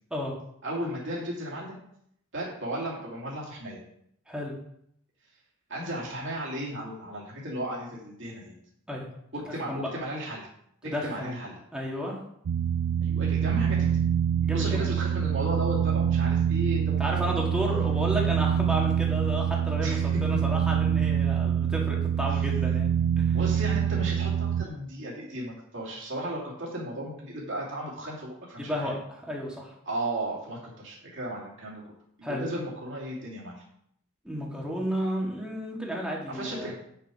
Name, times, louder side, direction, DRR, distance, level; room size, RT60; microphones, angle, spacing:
voice 1, 0.6-1.8 2.3-3.8 5.7-8.5 9.3-10.5 10.8-11.5 13.0-14.0 14.5-17.5 19.8-20.2 22.3-22.4 23.3-28.9 29.9-31.8 32.2-33.6 36.3-36.7, right 1 dB, 55° right, -5 dB, 2.9 m, -35 dB
voice 2, 10.8-11.4 11.7-12.2 14.4-14.9 17.0-23.4 28.6-29.7 32.2-32.4 34.2-36.7, equal, 5° right, -3 dB, 2.1 m, -32 dB
sound 1, 12.5-24.7, right 8 dB, 85° right, 0.4 m, -25 dB
9.1 x 6.9 x 4.9 m, 0.72 s
head